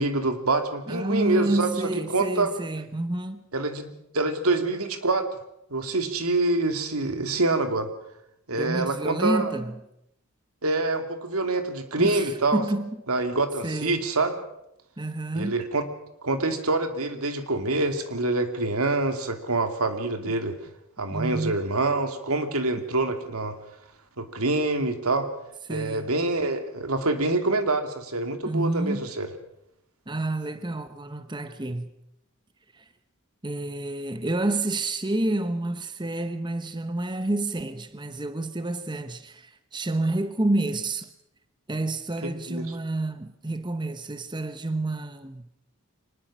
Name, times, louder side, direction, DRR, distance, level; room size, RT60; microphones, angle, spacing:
voice 1, 0.0-1.7 2.1-2.5 3.5-5.3 5.7-7.9 8.5-9.5 10.6-12.6 13.1-14.4 15.3-15.8 16.2-20.6 21.0-23.6 24.2-25.3 25.7-29.3 42.5-42.7, right 2 dB, 85° right, 2.7 m, -26 dB
voice 2, 0.9-3.4 8.6-9.8 12.0-13.0 13.6-14.0 15.0-15.6 21.1-21.6 25.7-26.1 28.4-29.1 30.1-31.9 32.7-32.8 33.4-41.1 41.7-45.5, right 2 dB, 20° right, 0.9 m, -29 dB
24.5 x 20.0 x 6.3 m
head